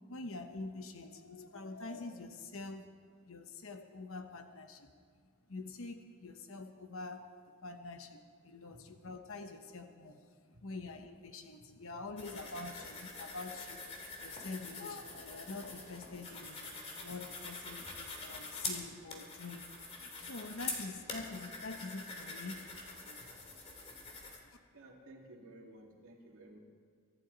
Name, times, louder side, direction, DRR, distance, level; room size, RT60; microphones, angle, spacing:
voice 1, 0.1-2.9 3.2-4.9 5.5-10.2 10.6-13.9 14.2-16.6 17.0-19.7 20.0-22.8 23.0-23.3, left 3 dB, 65° left, 6 dB, 1.0 m, -46 dB
sound 1, 12.2-24.4, left 3 dB, 30° left, 2.2 m, -45 dB
voice 2, 24.7-26.6, right 1 dB, 75° right, -1 dB, 2.5 m, -55 dB
24.0 x 12.0 x 4.0 m, 2.1 s
head